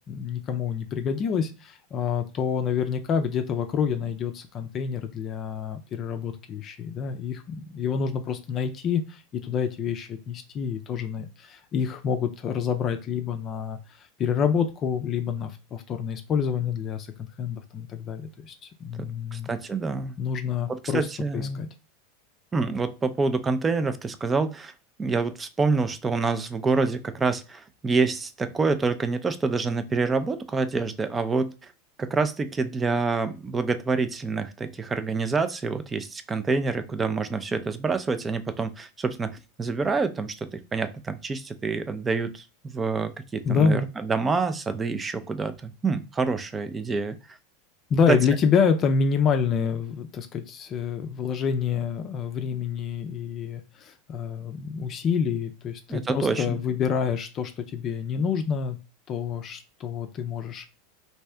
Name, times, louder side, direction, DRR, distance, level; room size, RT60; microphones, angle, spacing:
voice 1, 0.1-19.5 20.2-21.1 21.3-21.7 43.4-43.9 47.9-58.8 59.1-60.7, left 6 dB, 35° left, 7 dB, 0.5 m, -27 dB
voice 2, 19.0-20.2 20.7-21.6 22.5-24.7 25.0-31.5 32.0-47.2 48.1-48.2 55.9-56.6, right 4 dB, 20° right, 10 dB, 0.4 m, -27 dB
3.2 x 2.7 x 3.3 m, 0.31 s
hypercardioid pair, 110°, 0 cm